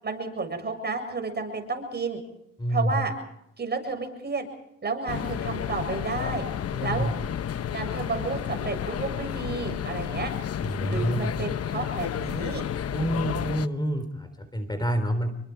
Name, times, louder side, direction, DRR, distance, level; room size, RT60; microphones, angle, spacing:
voice 1, 0.0-2.2 2.7-3.1 3.6-4.5 4.8-6.5 6.8-7.1 7.7-10.3 10.9-12.7, right 4 dB, 35° right, 5 dB, 7.3 m, -31 dB
voice 2, 2.6-3.0 6.7-7.1 10.6-11.3 12.9-15.5, equal, 15° left, 8 dB, 3.8 m, -28 dB
sound 1, 5.1-13.7, left 9 dB, 50° left, 1.0 m, -31 dB
28.0 x 23.5 x 4.7 m, 0.78 s
cardioid pair, 90°, 30 cm